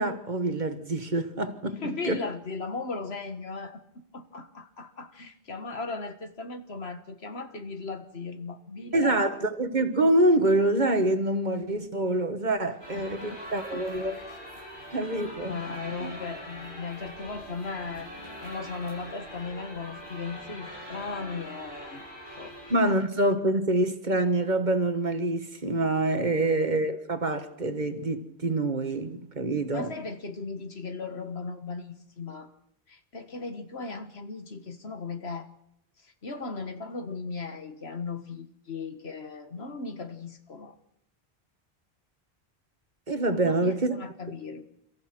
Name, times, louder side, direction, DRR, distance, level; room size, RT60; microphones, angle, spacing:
voice 1, 0.0-2.2 8.9-14.2 14.9-15.6 16.0-16.1 22.7-29.9 43.1-44.0, right 2 dB, 45° right, 1.6 m, -26 dB
voice 2, 1.7-3.8 4.1-9.2 12.9-13.4 13.7-13.8 15.5-18.1 18.4-22.0 22.4-22.5 26.3-26.6 29.7-32.5 32.9-35.5 36.0-40.8 43.4-44.6, left 4 dB, 70° left, 1.9 m, -37 dB
sound 1, 12.8-22.7, equal, 50° left, 7.4 m, -43 dB
30.0 x 14.0 x 6.2 m
omnidirectional pair, 1.1 m